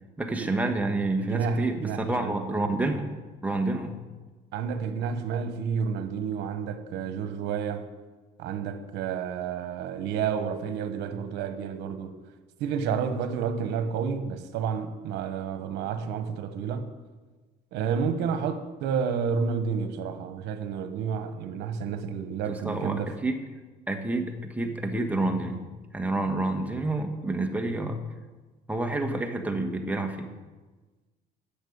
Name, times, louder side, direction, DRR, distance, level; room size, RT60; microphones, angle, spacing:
voice 1, 0.2-3.1 3.4-3.9 22.5-23.4 23.9-25.7 25.9-28.0 28.7-30.3, right 2 dB, 10° right, 4 dB, 1.5 m, -28 dB
voice 2, 1.2-2.4 4.5-7.9 8.4-12.2 12.6-16.9 17.7-23.1, right 6 dB, 85° right, 9 dB, 1.2 m, -30 dB
10.5 x 7.4 x 8.7 m, 1.3 s
cardioid pair, 110°, 17 cm